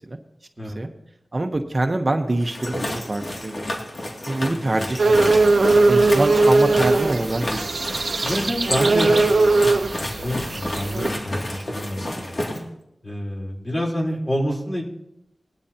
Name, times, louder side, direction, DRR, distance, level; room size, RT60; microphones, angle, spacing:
voice 1, 1.3-3.6 4.2-5.2 5.9-7.8, right 2 dB, 40° right, 5 dB, 1.0 m, -25 dB
sound 1, 2.4-12.6, left 1 dB, 55° left, 2.5 m, -30 dB
voice 2, 4.6-5.2 8.2-9.7 10.2-12.7 13.0-14.8, equal, 35° left, -3 dB, 3.9 m, -28 dB
sound 2, 5.0-11.1, right 3 dB, 75° right, 0.8 m, -19 dB
20.0 x 12.5 x 2.9 m, 0.82 s
wide cardioid pair, 70°, 0 cm